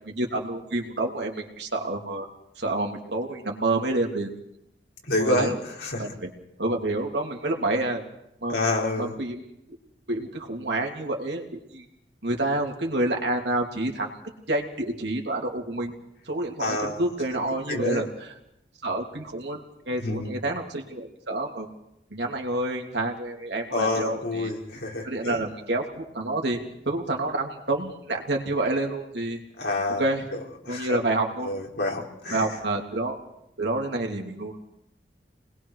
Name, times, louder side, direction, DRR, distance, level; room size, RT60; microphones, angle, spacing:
voice 1, 0.0-2.3 2.6-4.3 5.2-5.6 6.0-6.3 6.6-8.0 8.4-8.6 9.0-9.4 10.1-11.8 12.2-14.1 14.5-15.9 16.3-18.3 18.8-19.6 19.9-21.7 22.1-24.5 25.0-26.6 26.8-29.4 30.0-30.2 30.7-31.5 32.3-33.2 33.6-34.6, right 2 dB, 75° right, 1 dB, 2.9 m, -28 dB
voice 2, 5.1-5.5 5.8-6.0 8.5-9.1 16.6-17.0 17.7-18.1 20.0-20.3 23.7-25.4 29.6-30.0 30.3-31.0 31.4-32.4, left 2 dB, 80° left, -2 dB, 4.7 m, -28 dB
28.5 x 20.5 x 4.8 m, 0.81 s
head